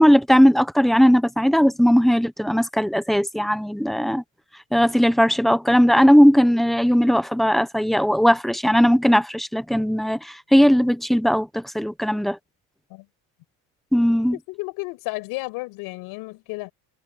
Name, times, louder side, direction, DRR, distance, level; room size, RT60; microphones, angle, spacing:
voice 1, 0.0-4.2 4.7-12.4 13.9-14.4, equal, ahead, 0.7 m, -18 dB
voice 2, 14.5-16.7, left 23 dB, 90° left, 5.5 m, -32 dB
cardioid pair, 165°, 35 cm